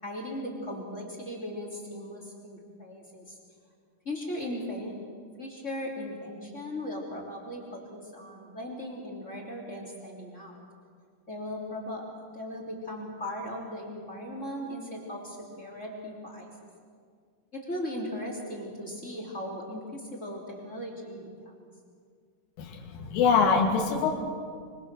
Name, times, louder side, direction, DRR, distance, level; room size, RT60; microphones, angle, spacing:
voice 1, 0.0-3.4 4.0-4.9 5.4-10.6 11.3-12.0 12.3-16.5 17.5-21.7, left 1 dB, 20° left, -1 dB, 2.9 m, -38 dB
voice 2, 22.6-24.1, left 5 dB, 85° left, -1 dB, 5.0 m, -24 dB
25.0 x 24.5 x 6.8 m, 2.1 s
omnidirectional pair, 5.5 m